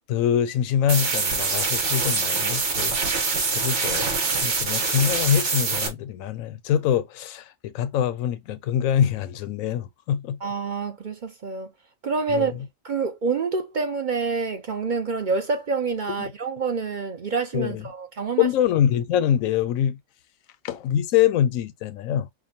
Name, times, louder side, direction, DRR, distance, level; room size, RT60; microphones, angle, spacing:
voice 1, 0.1-3.1 3.5-10.4 12.3-12.5 16.2-16.3 17.5-17.8 18.4-20.0 20.6-22.3, left 9 dB, 90° left, 1.0 m, -24 dB
sound 1, 0.9-5.9, right 4 dB, 65° right, 1.5 m, -24 dB
voice 2, 10.4-11.7 12.0-12.5 12.8-18.5, right 4 dB, 50° right, 0.6 m, -27 dB
5.9 x 2.2 x 2.7 m
omnidirectional pair, 1.4 m